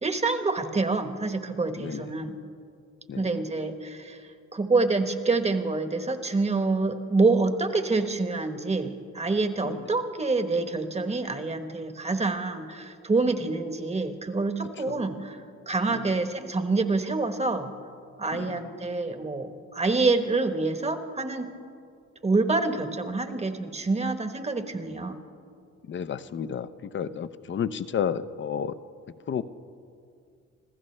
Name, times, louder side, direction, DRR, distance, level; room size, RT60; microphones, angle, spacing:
voice 1, 0.0-2.4 3.2-4.2 4.5-17.7 18.2-21.5 22.2-25.2, right 3 dB, 20° right, 7 dB, 1.2 m, -27 dB
voice 2, 1.8-2.3 3.1-3.4 9.6-9.9 14.9-15.0 15.9-16.1 18.3-18.7 25.9-28.8 29.3-29.4, left 8 dB, 40° left, 14 dB, 0.6 m, -32 dB
26.0 x 15.0 x 3.3 m, 2.3 s
cardioid pair, 90°, 30 cm